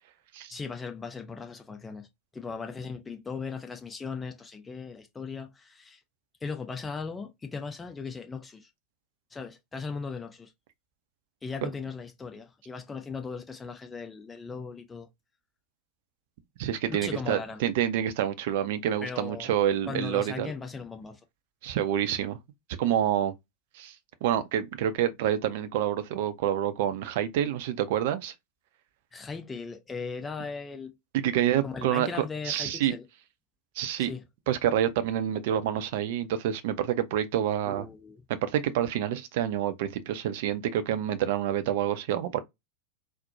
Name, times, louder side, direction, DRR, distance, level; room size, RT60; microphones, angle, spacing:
voice 1, 0.5-2.1 2.3-6.0 6.4-8.7 9.3-10.5 11.4-15.1 16.9-17.6 19.0-19.5 19.9-21.2 29.1-30.9 31.6-33.0 34.0-34.2 37.6-38.2, left 5 dB, 15° left, 0.6 m, -38 dB
voice 2, 16.6-20.5 21.6-22.4 22.8-23.3 23.7-23.9 24.2-28.3 31.1-32.9 33.8-34.1 34.5-37.8 38.4-42.4, right 10 dB, 50° right, 0.5 m, -27 dB
4.2 x 2.1 x 2.6 m
figure-of-eight pair, 90°, 0 cm